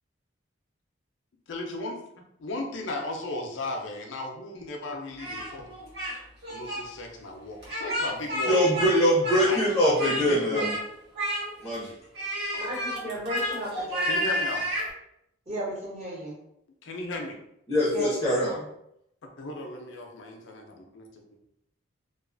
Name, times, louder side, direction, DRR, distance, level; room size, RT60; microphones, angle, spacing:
voice 1, 1.5-2.0 2.4-5.7 6.5-8.7 9.4-10.7 12.5-12.7 14.0-14.7 16.8-17.3 19.4-21.1, left 2 dB, 70° left, 2 dB, 0.5 m, -35 dB
Speech, 5.2-6.2 6.4-6.8 7.6-8.9 9.2-10.2 10.5-10.8 11.1-11.7 12.1-14.9, equal, 55° right, 0.9 m, -30 dB
voice 2, 8.5-10.7 11.6-11.9 17.7-18.5, equal, 15° left, -7 dB, 0.6 m, -23 dB
voice 3, 12.6-14.2 15.5-16.4 17.9-18.7, right 1 dB, 35° right, -7 dB, 1.0 m, -35 dB
2.4 x 2.3 x 2.4 m, 0.77 s
head